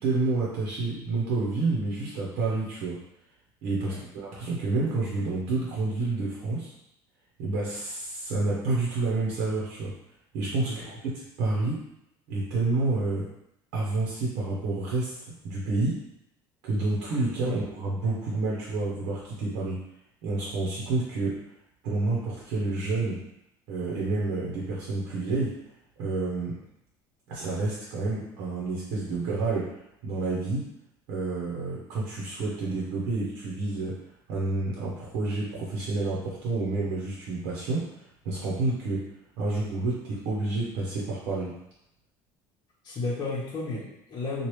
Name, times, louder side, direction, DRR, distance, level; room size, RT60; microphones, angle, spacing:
voice 1, 0.0-3.0 3.6-6.7 7.4-9.9 10.3-11.8 12.3-13.3 13.7-16.0 16.6-19.8 20.2-21.4 21.8-23.2 23.7-25.6 26.0-26.6 27.3-30.7 31.1-34.0 34.3-37.9 38.2-39.1 39.4-41.5, right 3 dB, 75° right, -5 dB, 0.9 m, -29 dB
voice 2, 42.8-44.5, left 3 dB, 40° left, -7 dB, 1.0 m, -32 dB
3.1 x 2.4 x 3.1 m, 0.81 s
supercardioid pair, 95°, 11 cm